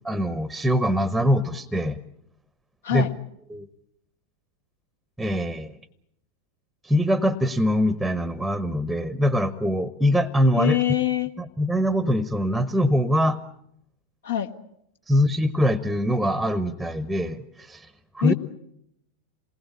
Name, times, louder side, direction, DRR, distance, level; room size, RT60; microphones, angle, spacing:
voice 1, 0.0-2.0 2.9-3.1 3.5-3.7 5.2-5.7 6.8-10.8 11.4-13.4 15.1-17.9 18.1-18.3, equal, ahead, 15 dB, 1.0 m, -23 dB
voice 2, 10.6-11.3 14.2-14.5 18.2-18.3, left 14 dB, 60° left, 5 dB, 1.5 m, -24 dB
27.5 x 20.0 x 8.6 m, 0.78 s
figure-of-eight pair, 90°, 0 cm